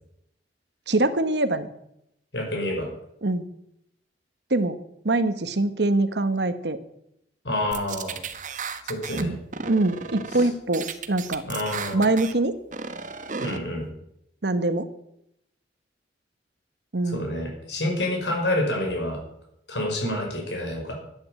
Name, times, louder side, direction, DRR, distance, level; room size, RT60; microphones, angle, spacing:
voice 1, 0.9-1.7 3.2-3.5 4.5-4.8 5.0-6.8 9.1-9.4 9.7-11.5 11.9-12.6 14.4-14.9 16.9-17.3, right 2 dB, 75° right, 11 dB, 1.2 m, -24 dB
voice 2, 2.3-2.9 7.4-8.2 8.8-9.3 10.3-10.5 11.4-12.1 13.4-13.9 17.1-19.2 19.7-20.9, left 1 dB, 85° left, 1 dB, 5.5 m, -28 dB
sound 1, 7.7-9.2 9.5-10.5 10.7-12.3 12.7-13.6, right 5 dB, 45° right, 1.2 m, -34 dB
12.0 x 9.6 x 7.6 m, 0.79 s
head